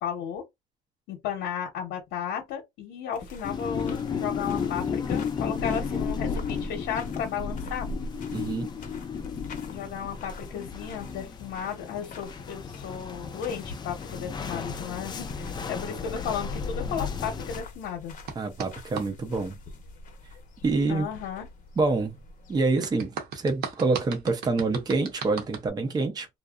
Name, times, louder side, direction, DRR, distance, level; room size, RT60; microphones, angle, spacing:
voice 1, 0.0-0.4 1.1-7.9 9.7-18.1 20.9-21.5, left 8 dB, 85° left, 0.8 m, -34 dB
sound 1, 3.1-22.7, left 3 dB, 50° left, 0.7 m, -41 dB
sound 2, 3.4-17.6, left 6 dB, 25° left, 0.4 m, -34 dB
voice 2, 8.3-8.7 18.4-19.6 20.6-21.1 21.8-22.1 22.5-26.3, right 3 dB, 25° right, 0.5 m, -26 dB
sound 3, 18.3-19.1 22.8-25.7, right 6 dB, 70° right, 0.7 m, -36 dB
2.6 x 2.0 x 2.3 m
cardioid pair, 110°, 17 cm